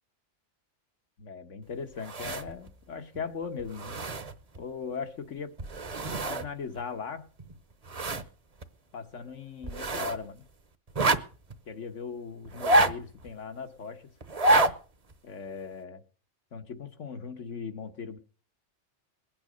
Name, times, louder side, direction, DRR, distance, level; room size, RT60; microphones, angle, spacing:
voice 1, 1.2-4.0 4.6-5.5 6.3-7.3 8.9-10.5 11.7-14.0 15.2-16.0 16.5-18.2, left 5 dB, 80° left, 8 dB, 1.7 m, -38 dB
sound 1, 2.0-2.7 3.1-3.3 3.6-4.6 5.6-6.5 6.8-6.9 7.4-8.3 8.6-8.7 9.6-10.2 10.9-11.5 12.5-13.3 14.2-14.8 15.1-15.2, right 2 dB, 35° right, 1.0 m, -27 dB
21.0 x 8.9 x 6.4 m, 0.40 s
omnidirectional pair, 1.2 m